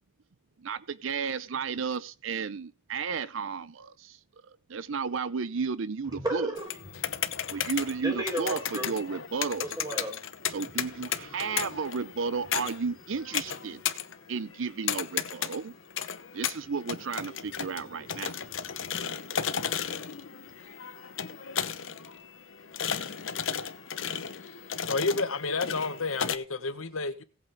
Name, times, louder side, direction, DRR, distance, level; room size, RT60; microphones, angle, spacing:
voice 1, 0.6-6.5 7.5-9.7 10.5-13.8 14.3-15.8 16.3-18.4, right 5 dB, 70° right, 0.6 m, -33 dB
voice 2, 6.1-6.6 7.0-7.6 8.0-8.9 9.6-10.2 13.5-13.6 18.8-18.9, right 1 dB, 20° right, 3.7 m, -34 dB
sound 1, 6.6-26.4, left 8 dB, 65° left, 1.0 m, -35 dB
voice 3, 24.9-27.2, left 3 dB, 90° left, 1.3 m, -30 dB
17.5 x 8.4 x 3.6 m
head